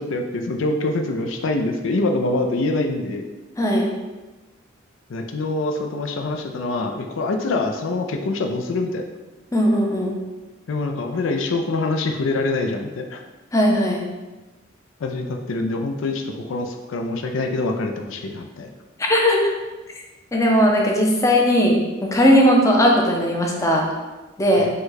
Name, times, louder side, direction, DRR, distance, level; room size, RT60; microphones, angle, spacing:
voice 1, 0.0-3.2 5.1-9.0 10.7-13.2 15.0-18.7 24.6-24.7, left 2 dB, 75° left, 4 dB, 0.4 m, -25 dB
voice 2, 3.6-3.9 9.5-10.1 13.5-14.0 19.0-19.4 20.3-23.9 24.4-24.7, equal, 15° left, -1 dB, 0.5 m, -18 dB
5.3 x 2.2 x 3.8 m, 1.2 s
head